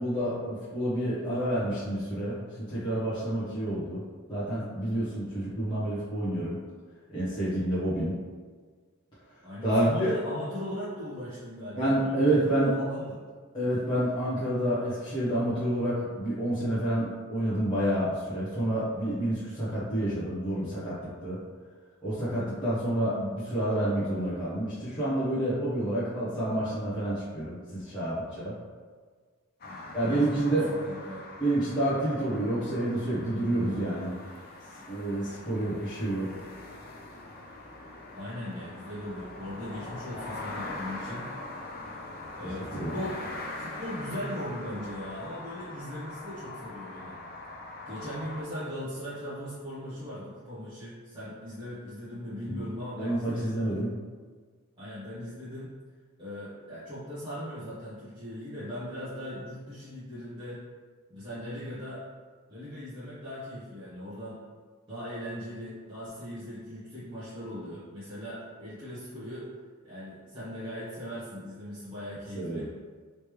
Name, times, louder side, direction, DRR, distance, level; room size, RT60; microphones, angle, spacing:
voice 1, 0.0-2.4 2.7-4.0 4.3-6.6 7.1-8.1 9.6-10.2 11.8-12.7 13.5-21.4 22.0-28.5 29.9-30.7 31.4-34.2 34.9-36.4 42.7-42.9 52.5-52.6 53.0-53.9 72.3-72.7, right 1 dB, 20° left, -14 dB, 0.9 m, -28 dB
voice 2, 9.4-13.2 29.6-31.3 38.1-41.6 42.3-43.2 43.6-47.2 47.8-53.6 54.8-55.7 56.2-60.6 61.1-62.0 62.5-64.4 64.9-69.5 69.8-72.7, equal, 20° right, -15 dB, 0.9 m, -39 dB
sound 1, 29.6-48.4, left 2 dB, 40° left, 0.4 m, -42 dB
3.2 x 3.1 x 3.1 m, 1.5 s
head